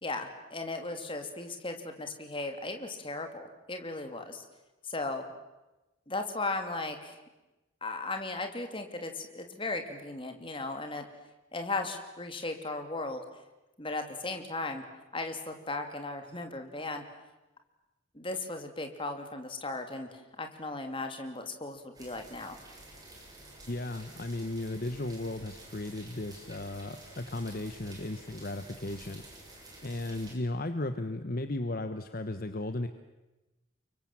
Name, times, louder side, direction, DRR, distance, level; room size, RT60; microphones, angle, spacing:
voice 1, 0.0-4.4 4.8-5.3 6.1-7.2 7.8-11.1 11.5-13.2 13.8-14.8 15.1-17.0 18.1-22.6, left 2 dB, 25° left, 5 dB, 2.9 m, -36 dB
sound 1, 21.9-30.3, right 1 dB, 20° right, 6.6 m, -51 dB
voice 2, 23.7-29.2 29.8-32.9, left 2 dB, 45° left, 9 dB, 1.1 m, -35 dB
29.5 x 24.0 x 7.5 m, 1.0 s
head